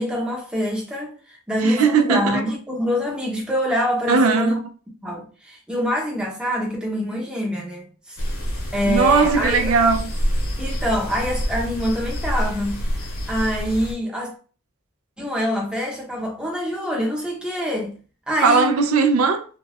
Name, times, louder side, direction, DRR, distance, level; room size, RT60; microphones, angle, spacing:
voice 1, 0.0-4.6 5.0-8.2 8.7-9.7 10.6-14.3 15.2-17.9 18.3-18.7, equal, 5° right, 0.7 m, -25 dB
voice 2, 1.6-2.4 4.1-4.6 8.9-10.1 18.4-19.5, right 4 dB, 80° right, 0.4 m, -18 dB
sound 1, 8.2-13.9, equal, 75° left, 0.9 m, -27 dB
2.4 x 2.2 x 3.2 m
head